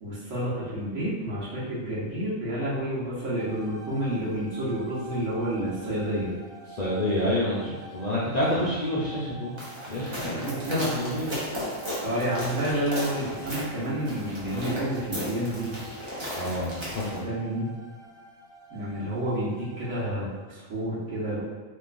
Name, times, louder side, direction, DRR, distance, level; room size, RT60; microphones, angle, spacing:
voice 1, 0.0-6.4 10.1-10.8 12.0-15.7 17.2-17.7 18.7-21.4, right 1 dB, 65° right, -8 dB, 1.5 m, -29 dB
sound 1, 3.3-20.0, right 1 dB, 25° left, 0.8 m, -47 dB
voice 2, 6.7-9.6 9.9-11.4 16.3-17.2, left 1 dB, 45° left, -8 dB, 0.5 m, -28 dB
sound 2, 9.6-17.2, equal, 25° right, 0.7 m, -36 dB
3.6 x 3.0 x 2.5 m, 1.4 s
omnidirectional pair, 1.4 m